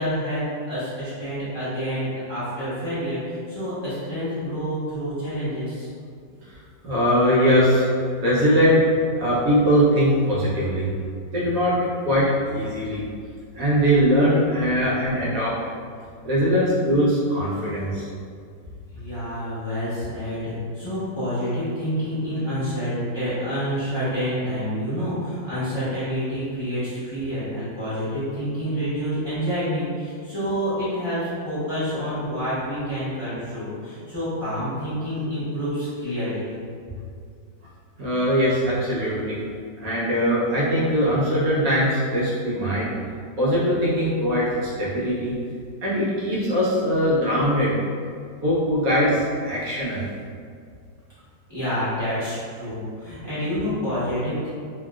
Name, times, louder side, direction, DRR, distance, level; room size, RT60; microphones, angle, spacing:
voice 1, 0.0-5.9 18.9-36.6 51.5-54.5, equal, 20° left, -14 dB, 0.8 m, -28 dB
voice 2, 6.8-7.8 8.2-8.9 9.2-10.9 11.3-11.8 12.0-12.3 12.5-13.0 13.6-15.5 16.2-18.1 38.0-39.4 39.8-42.9 43.4-45.3 45.8-47.7 48.4-50.0, equal, 65° right, -7 dB, 0.9 m, -21 dB
2.9 x 2.9 x 2.3 m, 2.2 s
omnidirectional pair, 2.1 m